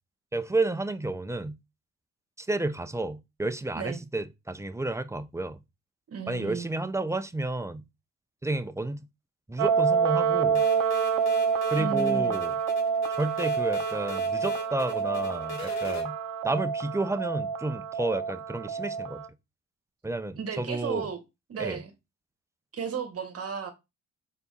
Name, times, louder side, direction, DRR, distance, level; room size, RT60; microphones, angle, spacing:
voice 1, 0.3-1.6 2.4-5.6 6.3-7.8 8.4-9.0 9.5-10.6 11.7-12.6 13.1-16.2 16.4-19.2 20.0-21.1 21.6-21.8, right 2 dB, 10° right, 0.6 m, -31 dB
voice 2, 6.1-6.7 11.8-12.3 20.4-21.2 21.5-21.9 22.7-23.7, right 6 dB, 50° right, 1.3 m, -34 dB
sound 1, 9.6-19.3, right 6 dB, 80° right, 0.6 m, -27 dB
sound 2, 10.5-16.0, left 4 dB, 65° left, 2.5 m, -40 dB
4.4 x 4.1 x 5.4 m
cardioid pair, 90°, 30 cm